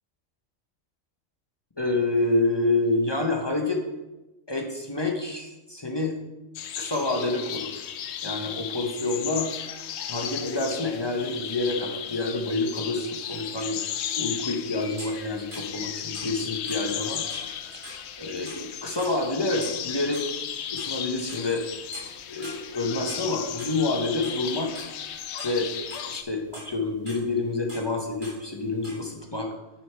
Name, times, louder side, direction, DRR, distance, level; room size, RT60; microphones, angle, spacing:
voice 1, 1.8-3.8 4.5-6.2 6.8-7.9 8.2-9.5 10.1-13.8 14.1-17.2 17.7-17.8 18.2-20.3 20.7-21.6 22.3-24.7 25.4-25.7 26.1-29.5, left 2 dB, 25° left, 2 dB, 0.7 m, -28 dB
sound 1, 6.6-26.2, left 9 dB, 65° left, 0.8 m, -35 dB
sound 2, 15.0-18.6 19.0-20.3 20.8-21.6 21.9-22.1 22.4-25.0 25.2-26.1 26.5-27.2 27.7-27.9 28.2-28.4 28.7-29.1, equal, 40° right, 3.2 m, -42 dB
9.0 x 6.4 x 3.3 m, 1.1 s
omnidirectional pair, 1.3 m